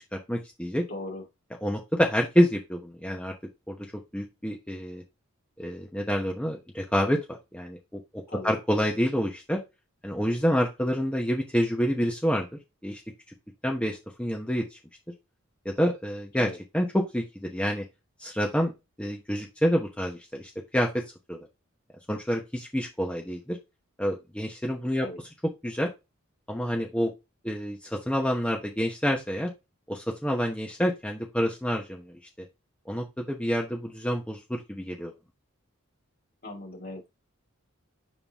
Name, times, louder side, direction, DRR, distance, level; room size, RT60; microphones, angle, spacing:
voice 1, 0.1-0.9 1.6-3.3 3.7-3.8 4.1-5.0 5.6-7.2 7.5-9.6 10.0-12.5 12.8-13.0 13.6-14.8 15.6-16.5 16.7-17.8 18.2-18.7 19.0-21.5 22.1-23.6 24.0-25.1 25.6-25.9 26.5-27.1 27.4-29.5 29.9-32.2 32.9-35.1, equal, 5° left, 0 dB, 1.0 m, -28 dB
voice 2, 0.9-1.2 8.3-8.5 16.4-16.6 25.0-25.2 36.4-37.1, left 2 dB, 45° left, 0 dB, 2.7 m, -38 dB
7.1 x 3.9 x 3.6 m, 0.24 s
head